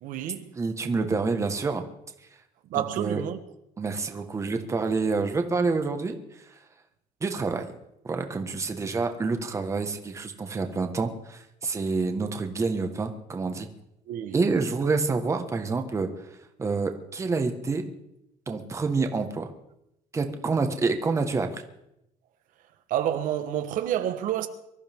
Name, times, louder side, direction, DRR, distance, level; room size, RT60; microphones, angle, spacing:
voice 1, 0.0-0.5 2.7-3.4 14.1-14.3 22.9-24.5, right 11 dB, 80° right, 1.2 m, -29 dB
voice 2, 0.5-1.9 2.7-3.2 3.8-6.2 7.2-7.7 8.0-13.7 14.3-16.1 16.6-17.9 18.5-19.5 20.1-21.6, right 4 dB, 20° right, 1.4 m, -27 dB
23.5 x 13.5 x 3.6 m
cardioid pair, 155°, 14 cm